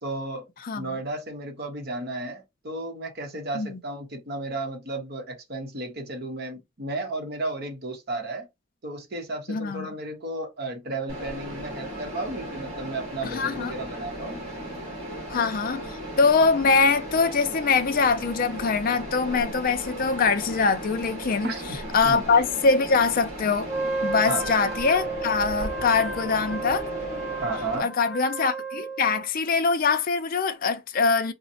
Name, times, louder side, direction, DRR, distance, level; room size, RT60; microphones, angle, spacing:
voice 1, 0.0-0.5 0.7-8.5 8.8-14.4 21.4-21.8 22.0-22.2 24.3-24.5 27.4-27.9, right 2 dB, 50° right, 0.9 m, -33 dB
voice 2, 0.6-1.0 3.5-3.8 9.5-9.9 13.2-13.7 15.3-21.5 21.9-23.7 24.0-26.9 27.8-31.3, left 4 dB, 40° left, 0.4 m, -23 dB
Mechanisms, 11.1-27.8, right 1 dB, 30° right, 1.6 m, -36 dB
Wind instrument woodwind instrument, 23.6-29.3, right 3 dB, ahead, 0.6 m, -33 dB
3.9 x 2.1 x 2.7 m
head